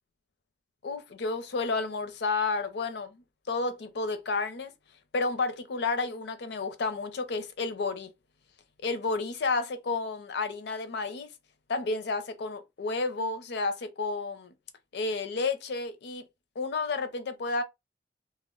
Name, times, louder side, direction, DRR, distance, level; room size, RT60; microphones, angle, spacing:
voice 1, 0.8-3.2 3.5-4.7 5.1-8.1 8.8-11.3 11.7-14.5 14.9-16.3 16.6-17.6, left 3 dB, 65° left, 0.5 m, -31 dB
2.1 x 2.0 x 3.7 m
head